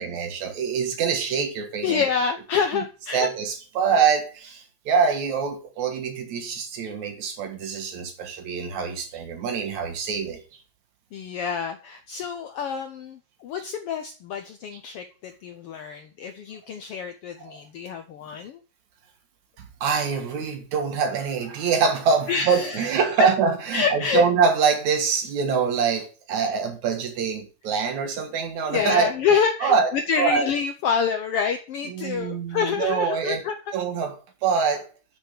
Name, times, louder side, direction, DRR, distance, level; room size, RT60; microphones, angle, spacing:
voice 1, 0.0-2.0 2.7-2.8 3.1-10.4 17.4-17.6 19.6-29.1 29.6-29.9 30.2-30.5 31.9-33.4 33.7-34.2 34.4-34.9, right 6 dB, 70° right, 2.9 m, -24 dB
voice 2, 1.8-3.3 11.1-18.6 22.3-23.3 23.7-24.2 28.7-33.5, left 6 dB, 75° left, 1.4 m, -27 dB
7.4 x 6.3 x 6.6 m
omnidirectional pair, 3.4 m